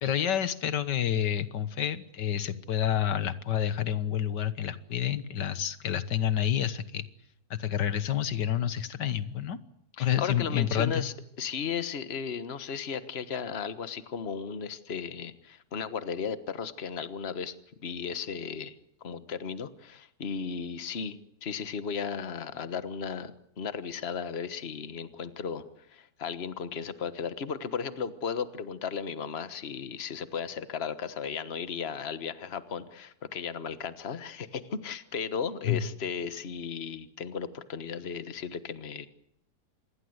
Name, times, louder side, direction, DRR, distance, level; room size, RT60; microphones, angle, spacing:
voice 1, 0.0-7.1 7.5-9.6 10.0-11.1 35.7-35.8, left 10 dB, 85° left, 13 dB, 1.9 m, -29 dB
voice 2, 10.0-17.5 17.8-18.7 19.0-25.6 25.9-39.1, left 6 dB, 40° left, 12 dB, 1.5 m, -35 dB
27.0 x 21.5 x 8.1 m, 0.75 s
omnidirectional pair, 1.8 m